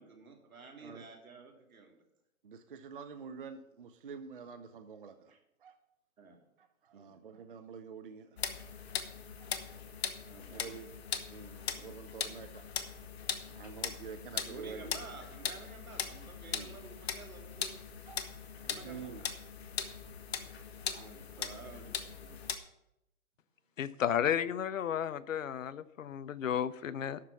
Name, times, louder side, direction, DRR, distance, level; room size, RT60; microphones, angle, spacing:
voice 1, 0.0-2.0 5.3-5.4 6.2-6.4 6.9-7.2 10.2-10.7 11.6-12.0 13.5-13.6 14.5-17.8 18.6-19.3 20.9-22.4, right 4 dB, 75° right, 1 dB, 3.0 m, -51 dB
voice 2, 2.4-5.3 5.6-5.8 6.6-8.4 9.4-9.5 10.5-10.9 11.3-12.6 13.5-14.9 16.5-16.7 18.1-18.3 18.8-19.3 20.9-21.1, right 6 dB, 40° right, 9 dB, 0.5 m, -47 dB
sound 1, 8.4-22.6, left 7 dB, 45° left, 1.0 m, -40 dB
voice 3, 23.8-27.2, left 9 dB, 65° left, 17 dB, 0.6 m, -33 dB
12.0 x 4.5 x 6.9 m, 0.86 s
hypercardioid pair, 155°, 42 cm